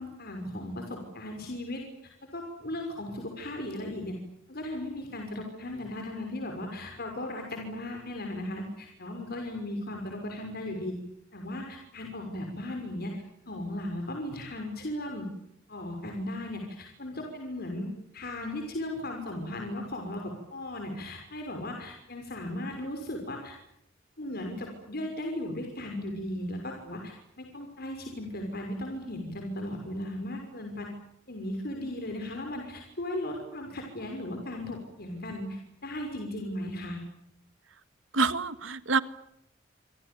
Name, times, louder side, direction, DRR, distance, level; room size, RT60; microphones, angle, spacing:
voice 1, 0.0-4.2 4.5-11.0 11.3-15.3 15.7-23.6 24.2-30.9 31.3-37.0, left 1 dB, 55° left, 3 dB, 6.1 m, -36 dB
voice 2, 38.1-39.0, right 4 dB, 80° right, 13 dB, 1.7 m, -26 dB
28.0 x 26.0 x 7.1 m, 0.77 s
head